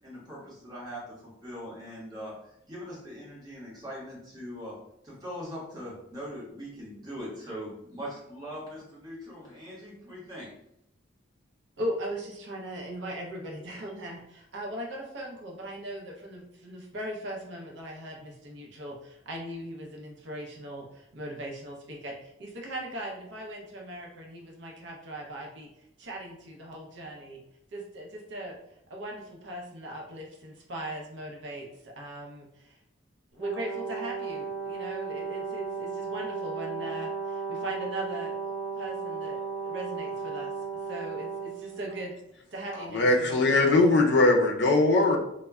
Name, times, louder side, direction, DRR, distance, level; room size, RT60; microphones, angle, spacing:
voice 1, 0.0-4.8 5.0-10.5, equal, 20° right, -6 dB, 0.8 m, -41 dB
voice 2, 11.8-25.7 26.0-27.4 27.7-28.6 28.9-32.8 33.3-43.7, right 1 dB, 60° right, 0 dB, 0.5 m, -39 dB
Brass instrument, 33.4-42.1, right 5 dB, 5° left, 0.5 m, -35 dB
voice 3, 42.8-45.2, left 2 dB, 55° left, 2 dB, 0.4 m, -21 dB
2.1 x 2.0 x 3.4 m, 0.80 s
head